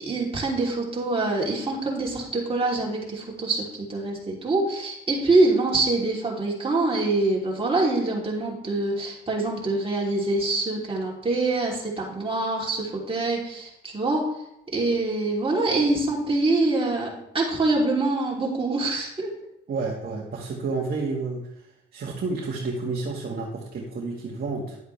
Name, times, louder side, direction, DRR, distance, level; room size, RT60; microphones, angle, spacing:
voice 1, 0.0-14.3 14.7-19.3, right 2 dB, 25° right, -3 dB, 3.2 m, -25 dB
voice 2, 19.7-21.5 21.9-24.8, right 3 dB, 50° right, -2 dB, 1.7 m, -30 dB
11.0 x 8.0 x 3.3 m, 0.82 s
cardioid pair, 90°, 20 cm